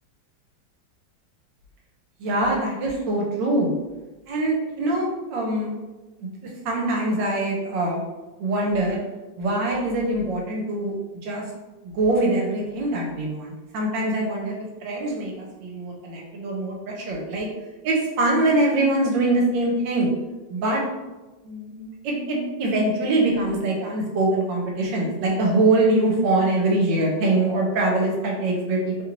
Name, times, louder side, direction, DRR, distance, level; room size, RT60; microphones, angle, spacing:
voice 1, 2.2-3.7 4.3-5.7 6.2-6.3 6.6-8.0 8.4-9.0 9.4-10.9 11.2-11.4 11.8-17.5 17.8-20.1 20.5-20.8 21.4-29.0, right 2 dB, 80° right, -1 dB, 1.3 m, -23 dB
3.1 x 2.5 x 3.0 m, 1.2 s
omnidirectional pair, 2.0 m